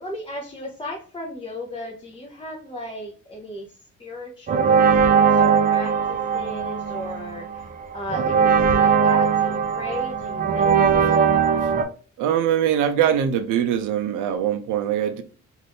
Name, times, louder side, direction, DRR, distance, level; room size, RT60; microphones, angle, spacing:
voice 1, 0.0-3.7 4.0-7.7 7.9-11.3, left 1 dB, 15° left, 0.6 m, -35 dB
sound 1, 4.5-11.8, right 6 dB, 30° right, 0.4 m, -19 dB
voice 2, 12.2-15.2, right 9 dB, 85° right, 0.5 m, -22 dB
2.5 x 2.5 x 3.4 m
cardioid pair, 90°, 30 cm